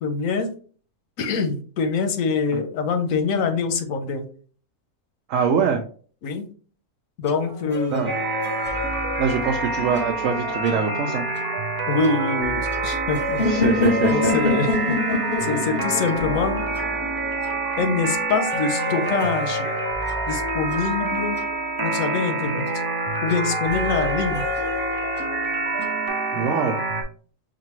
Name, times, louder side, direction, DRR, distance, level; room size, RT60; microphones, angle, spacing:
voice 1, 0.0-0.5 1.2-4.3 6.2-6.5 7.2-8.1 11.9-13.4 14.1-14.7 15.4-16.6 17.8-19.7 20.3-21.4 21.8-22.7 23.2-24.4, left 4 dB, 90° left, 7 dB, 1.1 m, -24 dB
voice 2, 5.3-5.8 7.9-8.1 9.2-11.2 13.4-14.3 26.3-26.8, right 6 dB, 80° right, 2 dB, 1.0 m, -23 dB
sound 1, 7.2-26.1, left 2 dB, 10° left, 0.9 m, -36 dB
sound 2, 8.1-27.0, right 3 dB, 30° right, 0.4 m, -27 dB
sound 3, 13.4-17.3, left 3 dB, 55° left, 0.8 m, -24 dB
5.2 x 2.5 x 2.9 m, 0.42 s
omnidirectional pair, 1.4 m